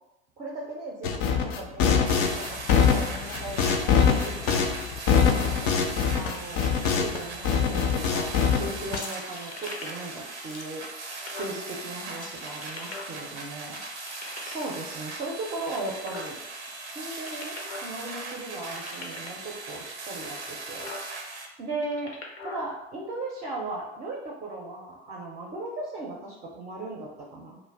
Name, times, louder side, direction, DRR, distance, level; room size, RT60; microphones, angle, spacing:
voice 1, 0.4-4.7 5.1-5.8 6.1-10.8 11.3-13.8 14.4-16.4 16.9-20.9 21.6-22.1 22.4-27.6, right 2 dB, 25° right, -1 dB, 0.5 m, -37 dB
sound 1, 1.0-7.2 7.4-9.0, left 6 dB, 40° left, 0.4 m, -23 dB
sound 2, 2.0-21.5, right 3 dB, 90° right, 0.5 m, -39 dB
sound 3, 8.9-10.1 10.5-11.6 12.1-13.4 13.7-14.8 15.3-16.6 16.9-17.9 18.2-18.3 18.5-19.4 20.1-20.2 20.6-21.0 21.7-22.6, left 3 dB, 85° left, 0.6 m, -41 dB
2.4 x 2.1 x 3.3 m, 0.94 s
figure-of-eight pair, 80°, 33 cm